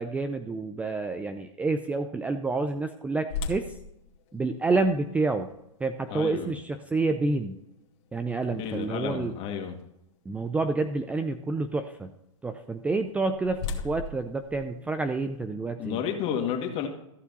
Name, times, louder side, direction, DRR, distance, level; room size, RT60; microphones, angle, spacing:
voice 1, 0.0-3.7 4.3-5.5 5.8-7.6 8.1-9.3 10.3-12.1 12.4-16.0, right 3 dB, 10° right, 8 dB, 0.5 m, -28 dB
sound 1, 3.3-9.2 9.8-9.9 10.5-10.7 12.8-15.5, left 5 dB, 55° left, 2.0 m, -40 dB
voice 2, 6.1-6.5 8.4-9.8 15.8-16.9, left 8 dB, 35° left, 3 dB, 2.0 m, -31 dB
14.0 x 6.6 x 4.0 m, 0.85 s
hypercardioid pair, 125°, 17 cm